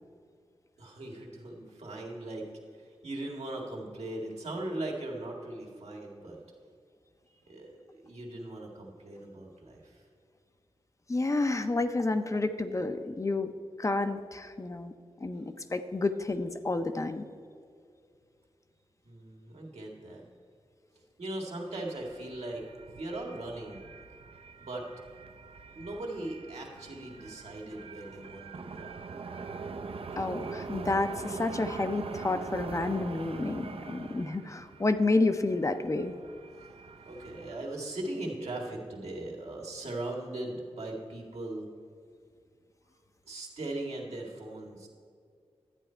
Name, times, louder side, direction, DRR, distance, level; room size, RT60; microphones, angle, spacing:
voice 1, 0.8-6.4 7.4-10.0 15.3-15.4 19.0-20.2 21.2-22.7 22.9-23.8 24.6-24.9 25.7-29.0 37.0-41.7 43.3-44.9, right 1 dB, 80° right, -1 dB, 1.8 m, -39 dB
voice 2, 11.1-13.5 13.8-14.9 15.2-17.2 30.2-36.1, left 2 dB, 30° left, 8 dB, 0.5 m, -30 dB
sound 1, 21.7-37.6, right 4 dB, 60° right, 0.5 m, -43 dB
11.5 x 8.8 x 4.4 m, 2.3 s
wide cardioid pair, 90°, 11 cm